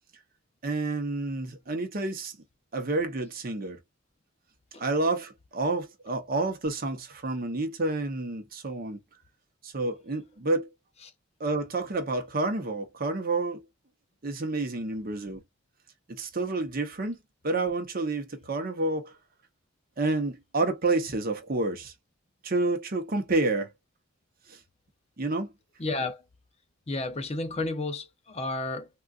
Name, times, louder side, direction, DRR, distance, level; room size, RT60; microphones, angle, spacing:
voice 1, 0.6-2.4 2.7-3.8 4.8-9.0 9.6-10.7 11.4-13.6 14.2-15.4 16.1-17.2 17.4-19.1 20.0-21.9 22.4-23.7 24.5-24.6 25.2-25.5, right 2 dB, 45° right, 0.8 m, -29 dB
voice 2, 25.8-26.2 26.9-28.9, left 2 dB, 30° left, 0.5 m, -32 dB
3.7 x 2.4 x 2.4 m
head